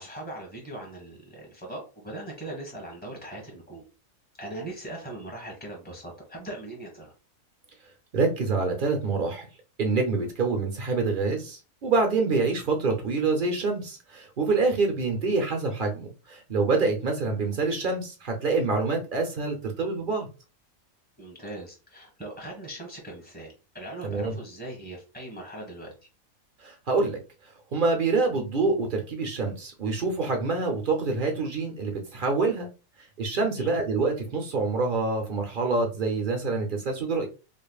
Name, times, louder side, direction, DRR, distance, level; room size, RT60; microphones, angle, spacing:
voice 1, 0.0-3.8 4.4-7.1 21.2-25.9 33.6-33.7, right 1 dB, 5° left, -1 dB, 1.4 m, -40 dB
voice 2, 8.1-9.5 9.8-20.3 24.0-24.4 26.6-27.2 27.7-32.7 33.2-37.3, right 3 dB, 45° right, 3 dB, 0.8 m, -26 dB
5.1 x 2.5 x 2.3 m, 0.32 s
omnidirectional pair, 1.4 m